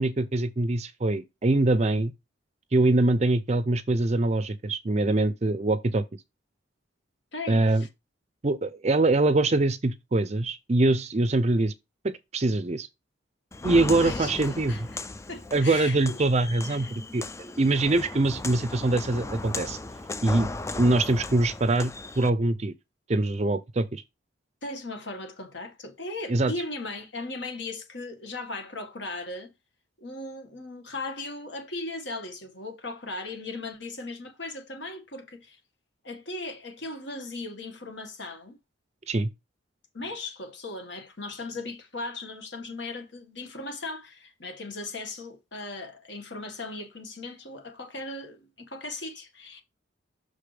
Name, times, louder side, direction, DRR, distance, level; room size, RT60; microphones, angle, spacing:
voice 1, 0.0-2.1 2.7-6.0 7.5-7.8 8.4-11.7 12.0-12.9 13.6-14.7 15.5-17.2 17.6-19.8 20.2-20.5 20.8-22.7 23.1-24.0 26.3-26.5 39.1-39.3, right 2 dB, 35° right, 0.5 m, -23 dB
voice 2, 7.3-7.9 14.0-14.8 15.3-16.1 16.7-16.9 24.6-29.5 30.0-35.6 36.0-38.6 39.9-49.6, left 2 dB, 65° left, 1.9 m, -37 dB
Walk footsteps, 13.5-22.3, left 2 dB, 15° left, 0.3 m, -36 dB
6.6 x 4.9 x 3.4 m
head